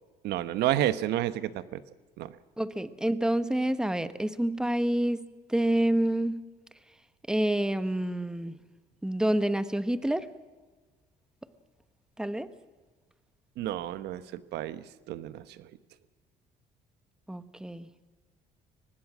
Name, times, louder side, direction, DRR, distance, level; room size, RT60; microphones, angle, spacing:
voice 1, 0.2-1.8 2.2-2.3 13.6-15.7, right 13 dB, 80° right, 14 dB, 1.1 m, -31 dB
voice 2, 2.6-5.2 5.5-6.4 7.3-8.6 9.0-10.2 12.2-12.5 17.3-17.9, right 1 dB, 5° right, 12 dB, 1.1 m, -28 dB
24.0 x 19.5 x 6.2 m, 1.3 s
cardioid pair, 110°, 17 cm